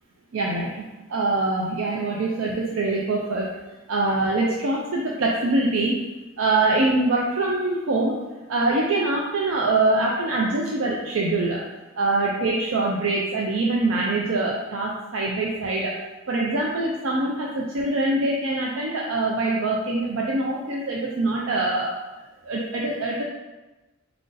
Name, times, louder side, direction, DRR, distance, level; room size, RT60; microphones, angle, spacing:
voice 1, 0.3-0.8 1.1-3.5 3.9-6.1 6.4-8.2 8.5-11.6 11.9-15.9 16.3-21.9 22.4-23.2, right 2 dB, 70° right, -3 dB, 0.5 m, -24 dB
4.3 x 2.6 x 3.8 m, 1.1 s
head